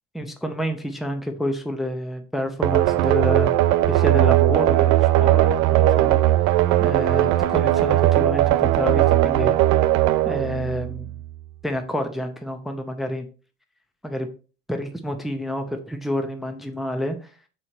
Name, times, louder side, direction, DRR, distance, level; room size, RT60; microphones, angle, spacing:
voice 1, 0.1-3.6 3.9-6.5 6.8-9.6 10.2-11.1 11.6-13.3 14.0-14.3 14.7-17.3, left 1 dB, ahead, 6 dB, 0.6 m, -28 dB
sound 1, 2.6-11.3, right 14 dB, 65° right, 0.5 m, -19 dB
6.2 x 4.4 x 3.9 m, 0.36 s
cardioid pair, 135°, 30 cm